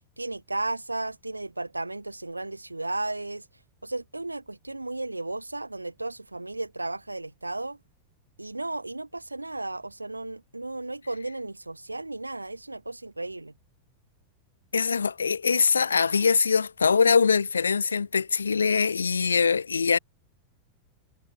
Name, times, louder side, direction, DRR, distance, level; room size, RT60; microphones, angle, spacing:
voice 1, 0.2-3.5 3.8-7.8 8.4-13.5, right 2 dB, 85° right, 5.3 m, -34 dB
voice 2, 14.7-20.0, left 5 dB, 75° left, 0.6 m, -23 dB
figure-of-eight pair, 90°, 0 cm